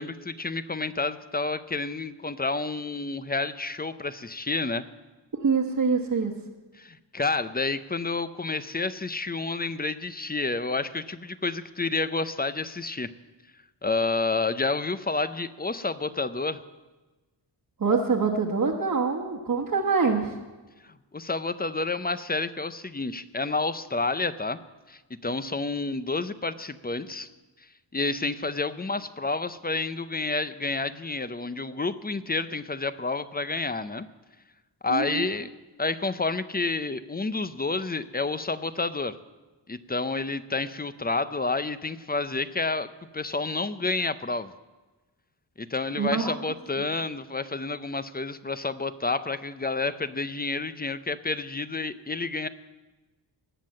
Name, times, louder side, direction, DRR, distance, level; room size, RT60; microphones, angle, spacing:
voice 1, 0.0-4.8 6.8-13.1 13.8-16.6 21.1-24.6 24.9-27.3 27.9-34.1 34.8-35.5 35.8-39.2 39.7-42.9 43.1-44.5 45.6-52.5, left 3 dB, 20° left, 13 dB, 0.6 m, -29 dB
voice 2, 5.4-6.3 17.8-20.3 34.9-35.3 46.0-46.4, right 5 dB, 45° right, -3 dB, 1.3 m, -25 dB
19.0 x 7.5 x 7.6 m, 1.2 s
wide cardioid pair, 105°, 45 cm